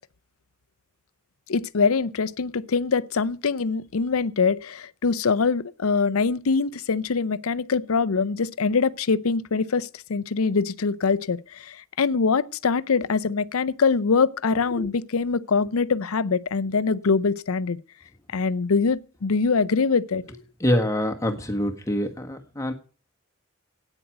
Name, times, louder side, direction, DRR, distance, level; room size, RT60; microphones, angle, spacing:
voice 1, 1.5-11.4 11.7-17.8 18.3-20.2, left 4 dB, 90° left, 0.6 m, -23 dB
voice 2, 20.6-22.7, equal, 15° left, 1.5 m, -25 dB
9.1 x 8.0 x 9.2 m
head